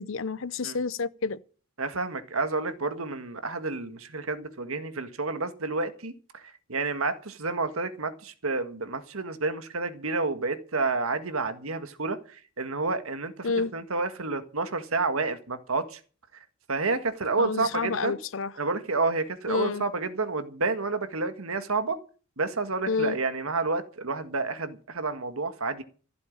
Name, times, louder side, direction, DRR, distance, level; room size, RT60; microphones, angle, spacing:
voice 1, 0.0-1.4 13.4-13.7 17.4-18.5 19.5-19.8 22.9-23.2, left 4 dB, 65° left, 0.7 m, -29 dB
voice 2, 1.8-6.4 6.7-16.0 16.7-18.1 18.6-22.0 22.4-25.8, right 3 dB, 80° right, 1.7 m, -30 dB
15.0 x 7.9 x 8.7 m
head